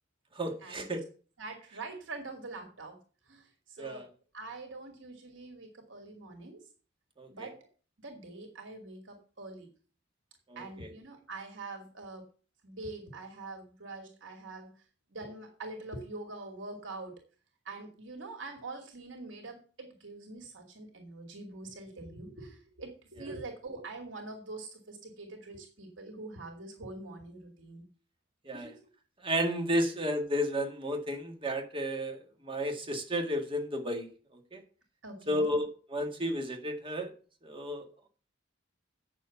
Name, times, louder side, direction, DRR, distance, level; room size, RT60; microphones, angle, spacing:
voice 1, 0.4-1.0 3.8-4.1 7.2-7.5 10.5-10.9 28.5-28.7 29.2-34.1 34.5-34.6 35.3-37.1 37.4-37.9, equal, 30° right, 3 dB, 2.0 m, -32 dB
voice 2, 1.4-3.0 3.3-4.1 4.3-6.6 7.3-7.7 8.0-9.7 10.6-12.3 12.6-14.7 15.1-17.2 17.6-27.9 28.5-28.8 29.8-29.9 35.0-35.5, right 2 dB, 80° right, 3 dB, 2.6 m, -44 dB
9.0 x 7.0 x 7.1 m, 0.39 s
head